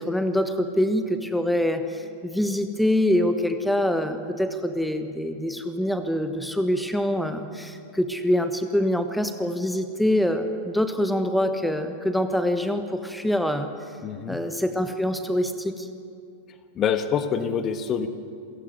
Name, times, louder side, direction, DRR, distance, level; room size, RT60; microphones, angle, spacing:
voice 1, 0.0-13.7 14.3-15.9, left 1 dB, ahead, 8 dB, 1.2 m, -25 dB
voice 2, 14.0-14.4 16.7-18.1, left 7 dB, 30° left, 10 dB, 1.3 m, -26 dB
28.0 x 16.5 x 8.0 m, 2.4 s
figure-of-eight pair, 90°, 0 cm